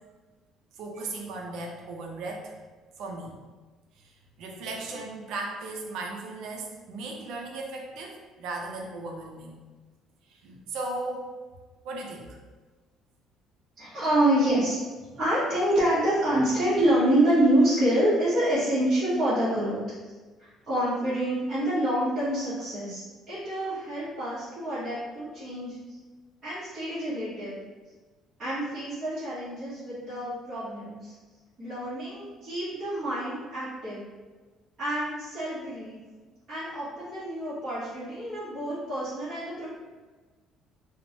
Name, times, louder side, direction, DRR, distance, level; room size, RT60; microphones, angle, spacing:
voice 1, 0.8-2.5 3.0-3.4 4.0-4.1 4.4-9.6 10.3-11.3 11.8-12.4, right 2 dB, 65° right, 0 dB, 0.5 m, -36 dB
voice 2, 13.8-14.8 15.2-20.1 20.4-23.0 23.3-25.7 26.4-27.6 28.4-31.1 31.6-34.0 34.8-36.0 36.5-39.7, right 1 dB, 30° right, -13 dB, 0.9 m, -27 dB
3.0 x 2.0 x 2.8 m, 1.3 s
cardioid pair, 170°, 0 cm